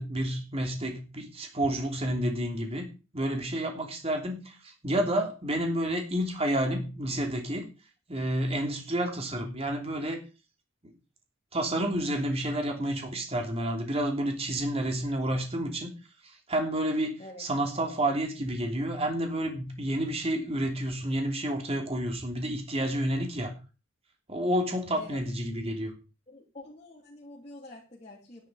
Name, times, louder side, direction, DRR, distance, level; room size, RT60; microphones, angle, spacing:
voice 1, 0.0-2.8 3.1-7.7 8.1-10.2 10.8-10.9 11.5-15.9 16.2-23.5 24.3-25.9, right 1 dB, 30° right, 3 dB, 3.1 m, -30 dB
voice 2, 26.3-28.5, left 2 dB, 30° left, -5 dB, 3.2 m, -46 dB
11.0 x 11.0 x 5.1 m, 0.32 s
head